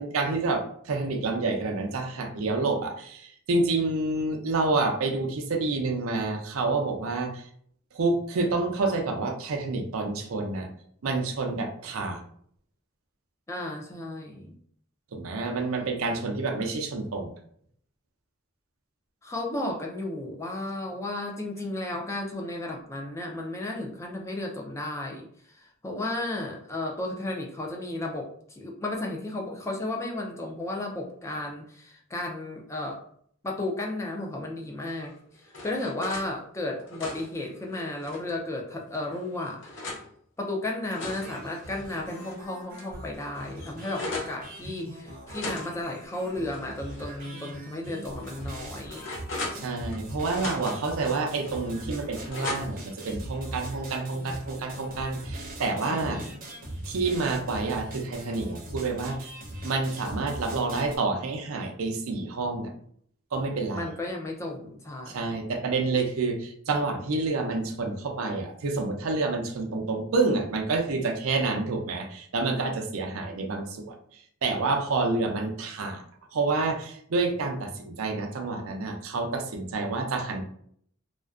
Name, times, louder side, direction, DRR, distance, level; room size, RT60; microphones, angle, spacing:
voice 1, 0.0-7.5 7.9-10.7 11.0-12.2 15.1-17.3 49.5-56.2 56.9-59.3 59.6-62.7 63.3-63.9 65.1-74.0 74.4-76.0 76.3-80.4, right 3 dB, 90° right, 4 dB, 0.5 m, -28 dB
voice 2, 13.5-14.6 19.2-33.0 33.4-40.0 40.4-49.1 55.9-56.4 63.7-65.4, left 2 dB, 15° left, 0 dB, 0.3 m, -34 dB
sound 1, 35.0-36.3 36.7-38.4 38.9-40.1 40.6-42.4 42.7-42.8 43.1-44.4 45.3-47.1 47.4-47.6 48.2-50.0 50.3-51.0 51.4-52.9, left 2 dB, 60° left, 0.6 m, -39 dB
sound 2, 41.2-61.0, right 1 dB, 45° right, 0.6 m, -41 dB
2.4 x 2.1 x 2.3 m, 0.63 s
head